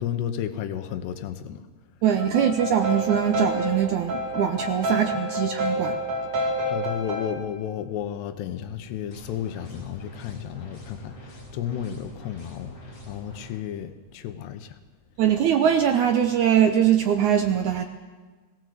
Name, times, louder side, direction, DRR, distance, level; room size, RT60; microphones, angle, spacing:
voice 1, 0.0-1.7 4.9-5.0 6.7-14.8, left 10 dB, 85° left, 9 dB, 3.1 m, -33 dB
voice 2, 2.0-6.0 15.2-17.8, right 9 dB, 85° right, 5 dB, 1.7 m, -22 dB
sound 1, 2.2-7.3, equal, 40° right, 5.3 m, -28 dB
sound 2, 9.1-13.5, left 1 dB, 45° left, 7.0 m, -44 dB
20.5 x 17.0 x 7.9 m, 1.4 s
omnidirectional pair, 4.7 m